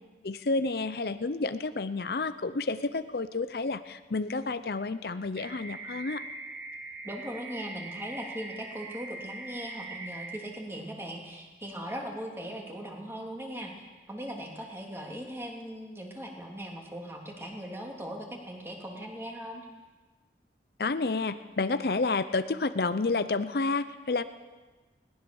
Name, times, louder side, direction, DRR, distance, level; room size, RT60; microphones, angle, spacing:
voice 1, 0.2-6.2 20.8-24.2, left 3 dB, 60° left, 12 dB, 0.6 m, -30 dB
sound 1, 5.4-10.4, right 2 dB, 70° right, 2.3 m, -42 dB
voice 2, 7.0-13.7 14.1-19.7, equal, 15° right, 0 dB, 3.0 m, -39 dB
20.5 x 19.0 x 7.1 m, 1.3 s
head